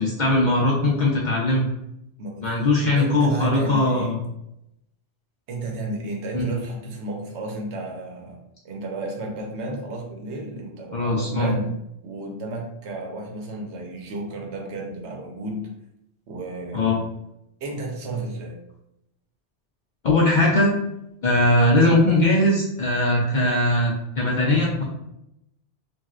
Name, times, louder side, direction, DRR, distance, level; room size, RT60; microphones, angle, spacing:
voice 1, 0.0-1.7 2.4-4.2 6.3-6.5 10.9-11.5 16.7-17.0 20.0-20.7 21.2-24.8, left 1 dB, 60° left, -3 dB, 0.5 m, -20 dB
voice 2, 2.2-4.2 5.5-8.4 8.6-11.8 12.0-15.7 16.3-17.0 17.6-18.6, right 2 dB, 75° right, 1 dB, 1.0 m, -32 dB
3.1 x 2.5 x 2.4 m, 0.83 s
omnidirectional pair, 1.2 m